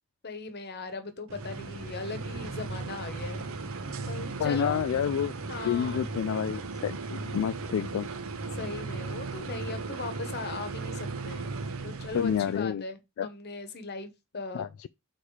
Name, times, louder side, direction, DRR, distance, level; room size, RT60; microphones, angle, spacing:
voice 1, 0.2-3.4 4.1-4.8 5.5-6.1 8.5-11.5 11.8-14.7, left 3 dB, 50° left, 1.1 m, -38 dB
sound 1, 1.3-12.6, right 3 dB, 80° right, 0.9 m, -36 dB
voice 2, 4.4-5.3 5.6-7.0 7.2-8.1 12.1-12.8 13.2-13.3 14.5-14.9, left 8 dB, 75° left, 0.3 m, -29 dB
6.4 x 4.2 x 4.9 m
head